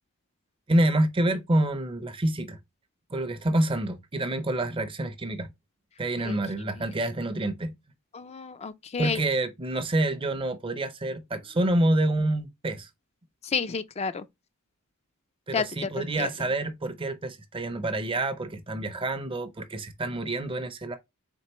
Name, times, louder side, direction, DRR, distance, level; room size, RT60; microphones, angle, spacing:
voice 1, 0.7-2.6 3.1-5.5 6.0-7.7 9.0-12.9 15.5-21.0, right 1 dB, 25° right, 0.5 m, -27 dB
voice 2, 8.1-9.2 13.4-14.2 15.5-16.3, left 5 dB, 30° left, 0.4 m, -31 dB
4.4 x 3.6 x 2.9 m
head